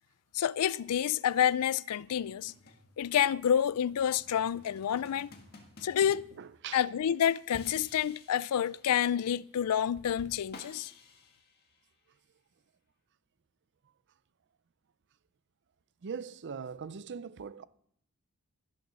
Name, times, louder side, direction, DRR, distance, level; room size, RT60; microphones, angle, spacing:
voice 1, 0.3-2.5 3.0-5.3 5.8-6.3 6.7-10.9, left 9 dB, 85° left, 0.4 m, -28 dB
sound 1, 2.2-7.0 7.5-9.1 10.0-11.9, left 2 dB, 45° left, 1.8 m, -54 dB
voice 2, 6.4-6.9 16.0-17.6, right 6 dB, 55° right, 0.5 m, -41 dB
16.0 x 6.8 x 6.3 m
head